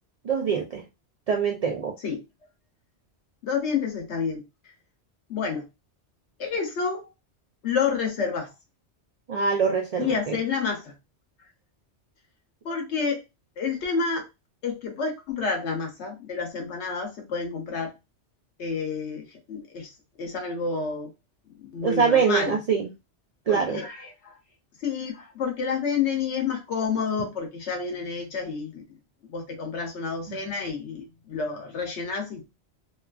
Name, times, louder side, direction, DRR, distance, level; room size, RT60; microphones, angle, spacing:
voice 1, 0.2-0.8 1.3-1.9 9.3-10.4 21.8-22.8 23.5-23.8 30.3-30.4, right 6 dB, 75° right, 0.3 m, -24 dB
voice 2, 3.4-4.4 5.3-5.6 6.4-7.1 7.6-8.5 10.0-10.9 12.6-13.2 13.6-14.3 14.6-17.9 18.6-19.9 20.2-21.1 21.7-22.5 23.5-24.3 24.8-28.8 29.3-32.5, left 5 dB, 75° left, 1.0 m, -29 dB
2.8 x 2.4 x 2.3 m
omnidirectional pair, 1.2 m